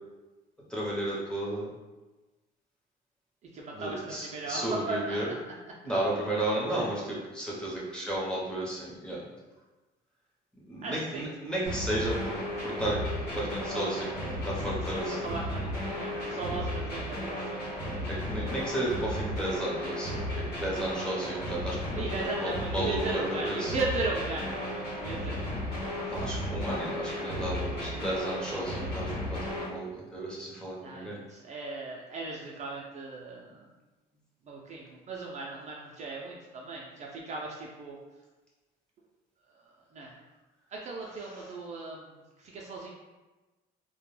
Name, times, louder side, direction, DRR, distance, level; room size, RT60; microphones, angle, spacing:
voice 1, 0.7-1.7 3.7-5.3 5.8-9.2 10.5-12.4 12.6-14.2 14.4-15.2 18.1-21.8 22.1-23.7 26.1-31.2 41.3-41.5, right 1 dB, 5° left, -6 dB, 0.7 m, -33 dB
voice 2, 3.5-5.2 5.5-5.6 6.7-6.8 10.8-11.3 13.7-14.1 14.9-17.4 21.9-25.6 26.0-26.2 30.8-33.7 34.4-38.0 39.5-40.2 40.7-42.9, right 3 dB, 45° right, -2 dB, 0.4 m, -37 dB
sound 1, 11.7-29.7, left 1 dB, 80° left, 1.1 m, -34 dB
2.2 x 2.1 x 3.1 m, 1.2 s
cardioid pair, 110°, 17 cm